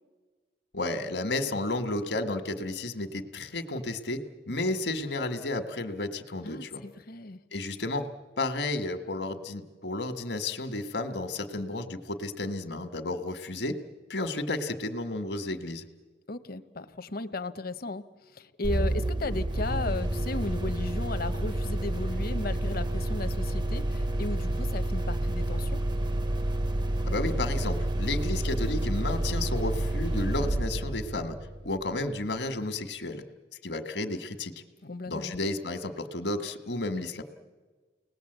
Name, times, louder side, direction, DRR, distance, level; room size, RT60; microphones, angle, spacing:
voice 1, 0.7-6.8 7.5-8.0 8.4-13.8 14.1-15.8 27.0-31.4 31.6-33.2 33.6-34.5 35.1-37.2, left 2 dB, 80° left, 8 dB, 1.7 m, -32 dB
voice 2, 6.4-7.4 16.3-25.8 34.8-35.4, left 2 dB, 60° left, 11 dB, 0.9 m, -36 dB
sound 1, 18.6-32.1, right 1 dB, 25° right, 0.7 m, -29 dB
30.0 x 19.5 x 8.1 m, 1.4 s
head